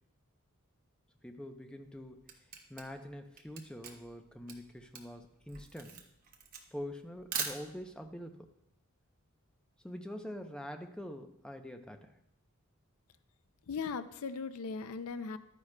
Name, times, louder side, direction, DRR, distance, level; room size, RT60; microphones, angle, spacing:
voice 1, 1.2-2.3 2.7-6.0 6.7-8.5 9.8-12.1, equal, 5° left, 5 dB, 0.5 m, -45 dB
Camera, 1.8-8.1, right 6 dB, 40° right, 1.0 m, -42 dB
voice 2, 13.7-15.4, left 5 dB, 75° left, 12 dB, 0.4 m, -38 dB
12.0 x 9.6 x 2.2 m, 0.81 s
head